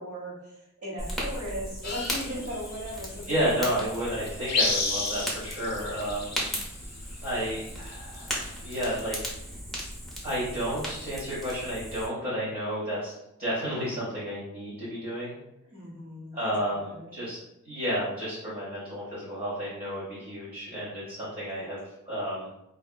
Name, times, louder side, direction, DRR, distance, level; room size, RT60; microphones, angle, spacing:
voice 1, 0.0-3.8 6.2-6.6 15.6-16.4 16.7-17.1 21.5-21.7, equal, 45° right, -6 dB, 1.2 m, -38 dB
Fire, 1.0-12.1, equal, ahead, 0.7 m, -37 dB
sound 1, 1.8-2.9 3.3-3.4 4.0-4.1 4.3-6.6 7.7-9.2, left 3 dB, 55° left, 0.5 m, -30 dB
voice 2, 3.3-6.3 7.2-9.3 10.2-13.1 13.4-15.3 16.3-17.4 17.6-22.5, equal, 30° right, -10 dB, 0.9 m, -31 dB
2.7 x 2.4 x 2.3 m, 0.85 s
wide cardioid pair, 115°, 32 cm